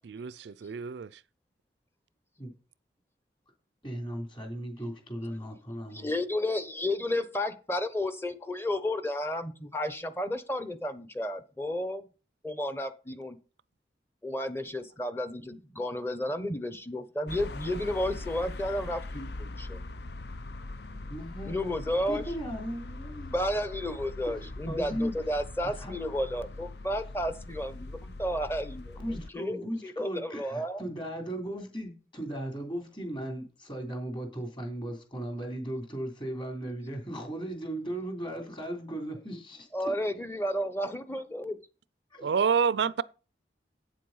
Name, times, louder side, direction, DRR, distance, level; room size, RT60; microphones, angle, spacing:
voice 1, 0.1-1.1 42.2-43.0, right 6 dB, 70° right, 0.4 m, -28 dB
voice 2, 3.8-6.1 20.9-21.6 22.1-23.3 24.3-25.1 25.6-25.9 29.0-39.9 42.1-42.3, right 1 dB, 30° left, 3.1 m, -37 dB
voice 3, 5.9-12.0 12.4-13.4 14.2-19.8 21.4-22.2 23.3-30.8 39.7-41.6, left 1 dB, 15° left, 0.9 m, -32 dB
sound 1, 17.3-29.3, left 2 dB, 65° left, 0.7 m, -41 dB
8.6 x 7.5 x 5.5 m
head